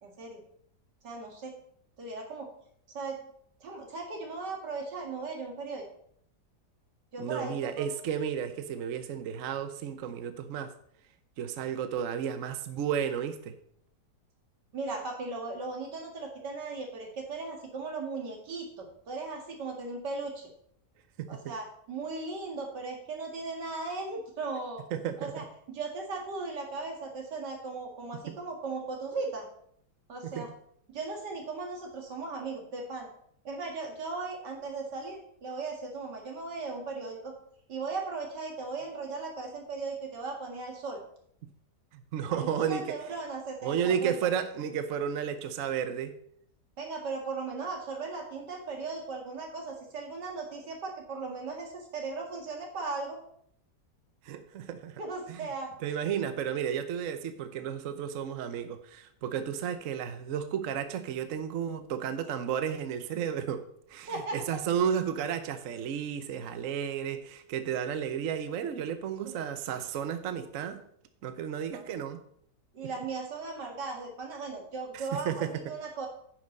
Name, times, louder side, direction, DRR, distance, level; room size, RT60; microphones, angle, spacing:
voice 1, 0.0-0.4 1.0-1.5 2.0-2.5 2.9-3.2 3.6-5.9 7.1-7.9 14.7-20.5 21.3-24.8 25.2-29.5 30.1-30.5 30.9-33.1 33.4-37.3 37.7-41.0 42.3-44.3 46.8-53.2 55.0-55.8 64.1-64.4 69.2-69.4 71.7-71.9 72.7-76.1, right 3 dB, 75° right, 2 dB, 2.6 m, -37 dB
voice 2, 7.2-10.7 11.4-13.5 21.2-21.5 24.9-25.4 28.3-28.4 30.2-30.5 41.9-43.0 43.6-46.1 54.2-55.0 55.3-55.5 55.8-63.6 63.9-70.8 71.2-72.2 74.9-75.7, right 8 dB, 60° right, 10 dB, 0.9 m, -33 dB
9.7 x 6.0 x 5.3 m, 0.67 s
omnidirectional pair, 1.8 m